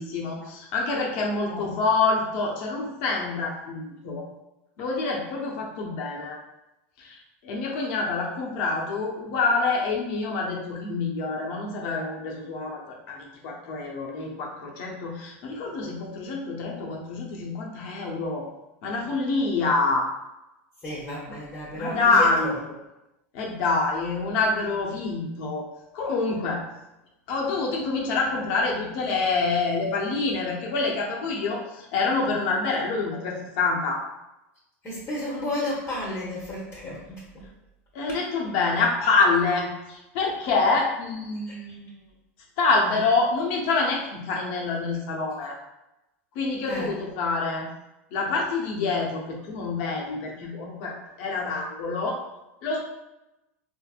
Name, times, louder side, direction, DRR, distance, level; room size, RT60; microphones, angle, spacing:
voice 1, 0.0-4.2 4.8-6.4 7.0-18.5 18.8-20.1 21.7-22.6 23.3-25.7 25.9-26.6 27.3-34.0 37.9-41.9 42.6-45.6 46.3-47.7 48.1-52.2 52.6-52.8, left 3 dB, 65° left, -1 dB, 0.8 m, -26 dB
voice 2, 20.8-22.5 34.8-37.5 38.1-38.2 41.5-41.6 46.7-46.9, left 1 dB, 30° left, -5 dB, 1.0 m, -32 dB
3.4 x 2.0 x 2.4 m, 0.94 s
hypercardioid pair, 105°, 7 cm